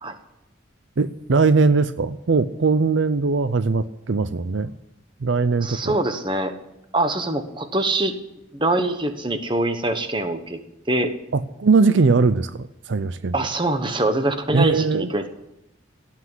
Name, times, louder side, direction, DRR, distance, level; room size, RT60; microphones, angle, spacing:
voice 1, 1.0-4.7 5.2-6.0 11.3-13.4 14.5-15.1, right 4 dB, 70° right, 13 dB, 0.5 m, -20 dB
voice 2, 5.6-6.5 6.9-8.1 8.5-10.6 10.9-11.1 13.3-15.3, right 2 dB, 25° right, 8 dB, 1.2 m, -23 dB
17.5 x 7.5 x 9.7 m, 0.86 s
head